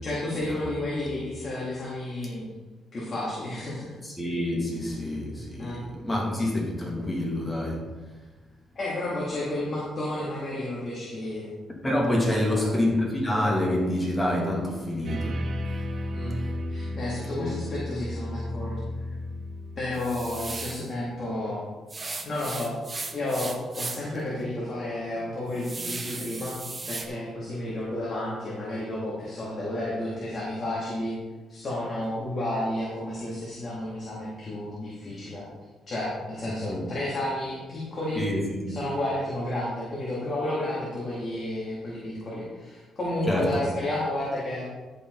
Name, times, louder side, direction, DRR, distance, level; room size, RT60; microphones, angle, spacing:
voice 1, 0.0-2.5 2.9-4.0 5.6-5.8 8.7-11.5 12.5-12.7 16.1-16.4 16.7-18.7 19.8-21.6 22.2-22.8 23.1-26.6 26.9-31.1 31.5-35.5 35.9-38.2 38.7-44.7, left 1 dB, 45° left, 3.0 m, -31 dB
voice 2, 4.0-7.9 11.8-15.4 15.7-15.8 16.4-16.6 17.4-17.6 36.7-36.9 38.1-38.8 43.3-43.6, left 1 dB, 15° left, 2.9 m, -27 dB
sound 1, 15.0-20.7, left 1 dB, 50° right, 1.7 m, -33 dB
sound 2, 19.9-20.9 21.9-24.2 24.6-24.7 25.2-27.1, right 3 dB, 30° right, 1.2 m, -36 dB
14.0 x 5.6 x 4.2 m
cardioid pair, 90°, 0 cm